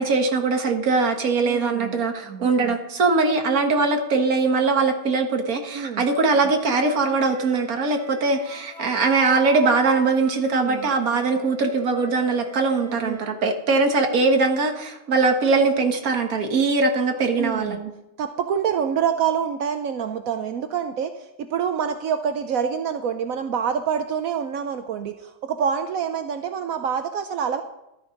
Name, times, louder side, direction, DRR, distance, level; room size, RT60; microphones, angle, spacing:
voice 1, 0.0-17.9, right 4 dB, 45° right, 4 dB, 1.8 m, -21 dB
voice 2, 1.4-2.0 2.4-2.8 5.7-6.1 10.5-10.9 12.9-13.2 17.4-17.8 18.2-27.6, right 7 dB, 80° right, 8 dB, 0.7 m, -26 dB
Wind instrument woodwind instrument, 6.2-13.3, equal, 20° right, 2.7 m, -41 dB
13.0 x 9.7 x 5.2 m, 0.91 s
omnidirectional pair, 2.3 m